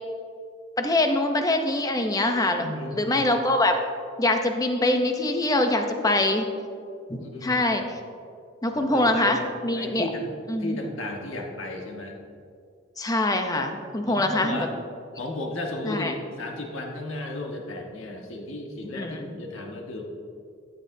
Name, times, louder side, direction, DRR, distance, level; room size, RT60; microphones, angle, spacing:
voice 1, 0.8-3.8 4.2-6.5 7.1-8.0 8.6-10.0 10.5-10.8 13.0-14.7 15.8-16.1 18.9-19.3, left 2 dB, 15° left, 5 dB, 0.6 m, -24 dB
voice 2, 2.6-3.3 7.2-7.7 8.7-9.4 9.7-10.3 10.6-12.1 14.1-14.7 15.2-20.0, left 1 dB, 75° left, 1 dB, 1.3 m, -34 dB
13.0 x 8.5 x 2.7 m, 2.3 s
head